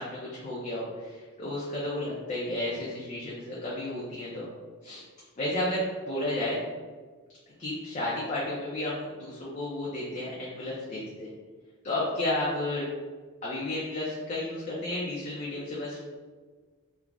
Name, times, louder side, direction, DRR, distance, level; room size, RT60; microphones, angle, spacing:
voice 1, 0.0-4.5 4.8-5.0 5.4-6.6 7.6-11.3 11.8-12.9 13.4-16.0, left 1 dB, 35° left, -6 dB, 0.4 m, -32 dB
3.2 x 2.0 x 2.4 m, 1.5 s
head